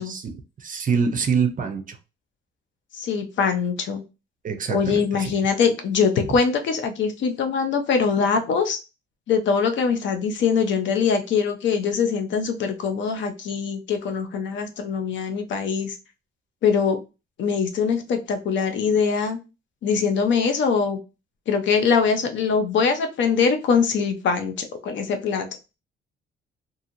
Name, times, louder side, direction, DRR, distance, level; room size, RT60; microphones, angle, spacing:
voice 1, 0.0-2.0 4.4-5.4, right 5 dB, 45° right, 0.6 m, -26 dB
voice 2, 2.9-4.0 4.7-8.8 9.3-16.0 16.6-17.0 17.4-19.4 19.8-21.0 21.5-25.5, left 6 dB, 70° left, 0.7 m, -22 dB
2.8 x 2.7 x 2.5 m
cardioid pair, 90°, 20 cm